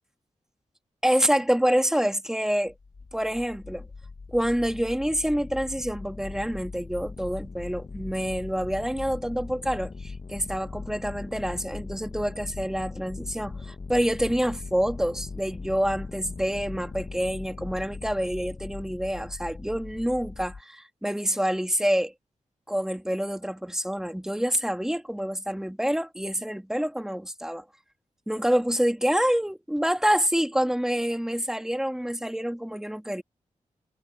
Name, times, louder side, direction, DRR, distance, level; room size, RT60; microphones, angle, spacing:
voice 1, 1.0-2.7 3.1-3.9 4.3-22.1 22.7-27.6 28.3-33.2, equal, 5° right, 2.5 m, -27 dB
sound 1, 2.7-20.6, left 4 dB, 40° left, 1.4 m, -40 dB
wide cardioid pair, 130°, 13 cm